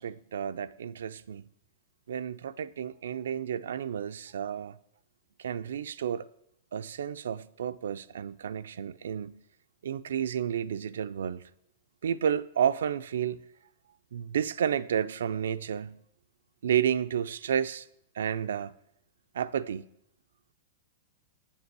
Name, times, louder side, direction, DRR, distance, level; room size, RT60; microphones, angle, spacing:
voice 1, 0.0-1.4 2.1-4.8 5.4-6.3 6.7-9.4 9.8-11.4 12.0-13.4 14.1-16.0 16.6-17.9 18.1-18.7 19.3-19.9, right 8 dB, 85° right, 0.3 m, -31 dB
7.4 x 7.2 x 4.7 m
hypercardioid pair, 130°, 0 cm